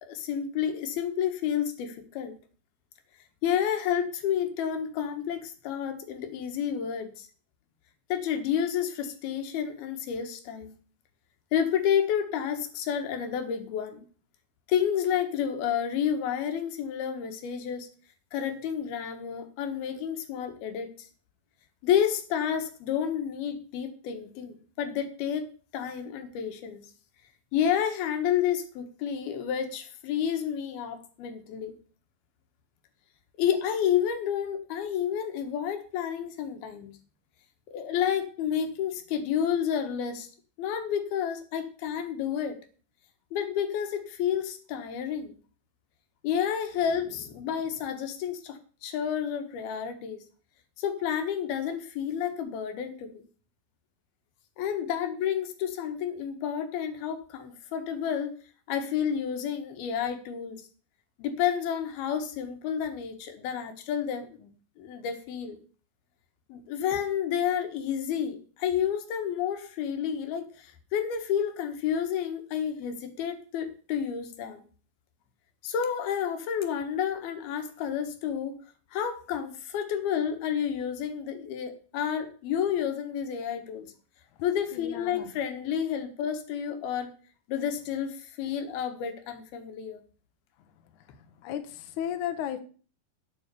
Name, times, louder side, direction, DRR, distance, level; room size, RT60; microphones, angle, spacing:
voice 1, 0.0-2.3 3.4-7.3 8.1-10.7 11.5-14.0 14.7-17.9 18.3-21.1 21.8-25.5 25.7-26.8 27.5-31.8 33.4-37.0 37.7-40.3 40.6-42.6 43.3-45.3 46.2-50.2 50.8-53.2 54.6-58.3 58.7-60.6 61.2-64.5 64.8-65.6 66.5-74.6 75.6-78.5 78.9-83.9 84.4-87.1 87.5-90.0, left 8 dB, 85° left, 7 dB, 3.4 m, -30 dB
voice 2, 84.7-85.3 91.4-92.6, left 10 dB, 65° left, 8 dB, 2.2 m, -34 dB
10.0 x 7.9 x 6.9 m, 0.40 s
omnidirectional pair, 4.2 m